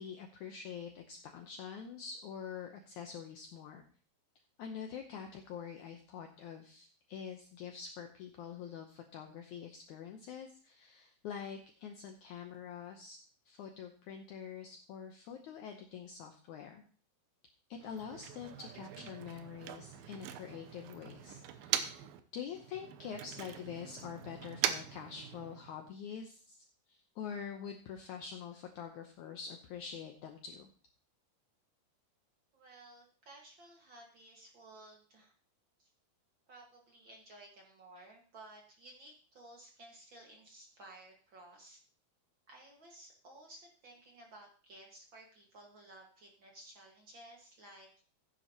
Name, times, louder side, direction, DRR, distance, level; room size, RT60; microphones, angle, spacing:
voice 1, 0.0-3.8 4.6-13.2 13.4-16.8 17.7-22.0 22.3-30.7, left 7 dB, 85° left, 4 dB, 1.7 m, -45 dB
Motor vehicle (road), 17.8-22.2 22.5-25.8, right 10 dB, 75° right, 2.5 m, -41 dB
voice 2, 32.5-35.3 35.8-35.9 36.5-41.8 42.5-47.9, right 1 dB, 50° right, 0 dB, 1.5 m, -55 dB
15.5 x 9.9 x 2.9 m, 0.42 s
omnidirectional pair, 4.6 m